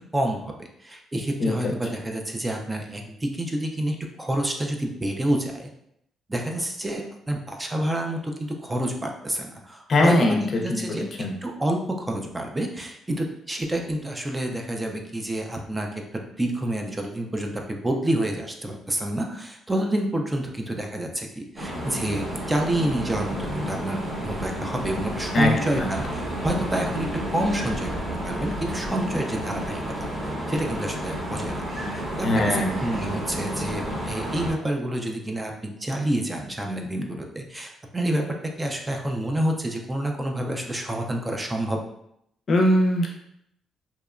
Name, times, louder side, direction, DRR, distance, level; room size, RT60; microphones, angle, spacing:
voice 1, 0.1-5.7 6.3-11.0 11.4-27.9 28.2-29.8 30.2-38.3 38.6-41.8, right 1 dB, 15° right, 2 dB, 0.3 m, -28 dB
voice 2, 1.4-1.7 9.9-11.3 25.3-25.9 32.2-32.7 42.5-43.1, left 1 dB, 50° left, 1 dB, 0.5 m, -21 dB
sound 1, 21.6-34.5, right 1 dB, 30° right, 0.8 m, -31 dB
2.8 x 2.1 x 2.4 m, 0.75 s
cardioid pair, 90°, 0 cm